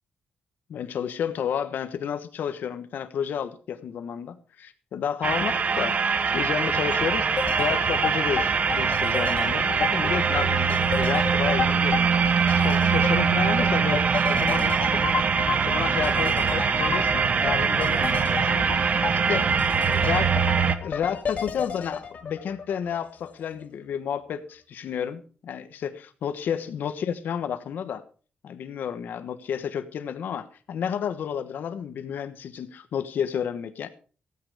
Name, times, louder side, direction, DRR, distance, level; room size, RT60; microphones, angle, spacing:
voice 1, 0.7-6.0 6.3-15.0 15.4-18.9 19.3-20.4 20.8-28.0 28.4-33.9, left 8 dB, 80° left, 1.2 m, -31 dB
sound 1, 5.2-20.8, right 6 dB, 50° right, 1.1 m, -23 dB
sound 2, 7.4-23.3 23.6-23.7, left 5 dB, 55° left, 2.2 m, -32 dB
15.5 x 9.5 x 5.0 m
cardioid pair, 105°, 3 cm